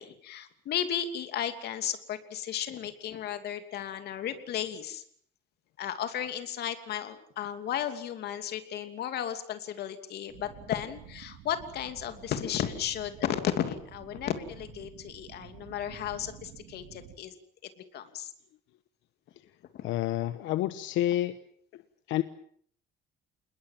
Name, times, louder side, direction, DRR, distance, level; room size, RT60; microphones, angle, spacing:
voice 1, 0.0-5.0 5.8-17.3 17.8-18.3 19.7-19.8, left 10 dB, 55° left, 9 dB, 2.8 m, -34 dB
sound 1, 10.3-17.2, right 9 dB, 90° right, 3.0 m, -50 dB
voice 2, 19.8-21.4 21.7-21.8 22.1-22.2, left 13 dB, 80° left, 12 dB, 1.2 m, -29 dB
27.5 x 21.0 x 7.5 m, 0.62 s
cardioid pair, 165°, 19 cm